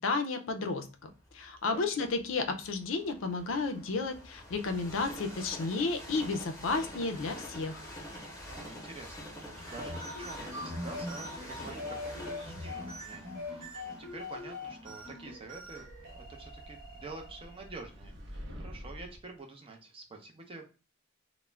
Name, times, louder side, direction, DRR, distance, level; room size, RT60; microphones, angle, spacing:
voice 1, 0.0-7.8, left 3 dB, 75° left, 7 dB, 0.4 m, -32 dB
Train, 1.3-17.2 17.8-17.9, equal, 15° left, 0.7 m, -47 dB
voice 2, 1.7-2.1 8.5-20.7, right 3 dB, 30° right, 3 dB, 0.5 m, -48 dB
sound 1, 9.5-17.8, left 2 dB, 45° right, 1.0 m, -42 dB
sound 2, 15.6-19.3, equal, 65° right, 0.7 m, -47 dB
2.3 x 2.1 x 3.1 m, 0.35 s
head